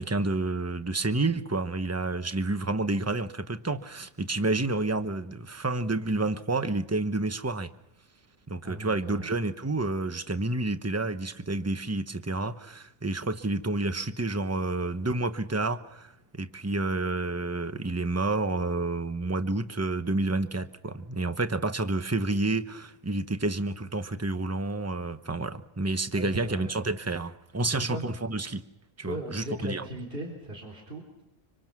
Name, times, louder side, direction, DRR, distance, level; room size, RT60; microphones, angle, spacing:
voice 1, 0.0-7.7 8.5-28.6 29.0-29.8, right 2 dB, 15° right, 10 dB, 0.9 m, -29 dB
voice 2, 8.6-9.3 26.1-26.7 27.7-28.0 29.0-31.2, right 1 dB, 45° right, 0 dB, 3.9 m, -38 dB
26.0 x 25.5 x 6.1 m, 0.90 s
omnidirectional pair, 1.4 m